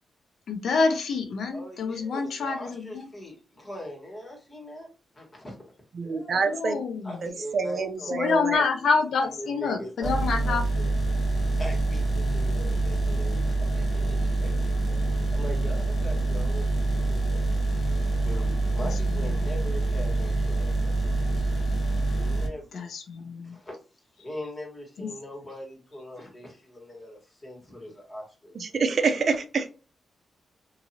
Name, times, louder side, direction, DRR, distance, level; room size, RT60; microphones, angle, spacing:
voice 1, 0.5-3.1 6.5-7.3 8.0-10.7 18.8-19.5 22.7-23.6 25.0-25.1, left 4 dB, 75° left, 0.5 m, -27 dB
voice 2, 1.5-4.9 5.1-5.6 6.0-6.6 7.0-8.4 9.4-10.9 11.5-17.5 18.2-21.0 22.1-22.9 23.4-29.4, left 1 dB, 30° left, 1.5 m, -41 dB
voice 3, 5.9-6.8 7.2-8.6 28.6-29.8, right 4 dB, 55° right, 0.4 m, -27 dB
sound 1, 10.0-22.5, right 2 dB, 60° left, 1.1 m, -26 dB
2.7 x 2.6 x 2.8 m
cardioid pair, 95°, 0 cm